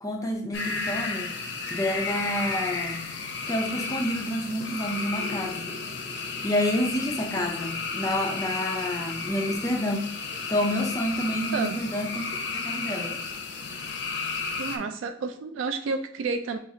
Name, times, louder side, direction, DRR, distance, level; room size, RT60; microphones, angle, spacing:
voice 1, 0.0-1.3 1.7-3.0 3.5-5.7 6.4-10.1 10.5-13.1, left 1 dB, 15° left, 3 dB, 0.4 m, -29 dB
sound 1, 0.5-14.8, left 4 dB, 60° left, 0.6 m, -33 dB
voice 2, 14.6-16.6, right 4 dB, 85° right, 7 dB, 0.3 m, -30 dB
5.7 x 2.3 x 2.7 m, 0.67 s
head